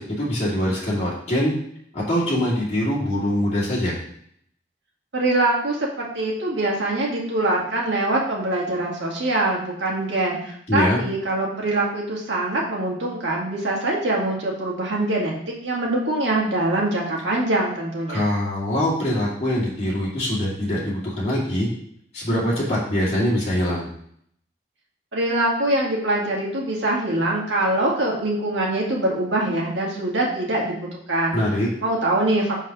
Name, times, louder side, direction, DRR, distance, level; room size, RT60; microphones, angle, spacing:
voice 1, 0.0-1.6 1.9-3.9 10.7-11.0 18.1-21.7 22.1-23.9 31.3-31.7, equal, 35° left, -8 dB, 2.4 m, -23 dB
voice 2, 5.1-15.3 15.6-18.2 25.1-31.4 31.8-32.5, right 2 dB, 70° right, -2 dB, 2.0 m, -23 dB
5.8 x 4.6 x 6.0 m, 0.67 s
head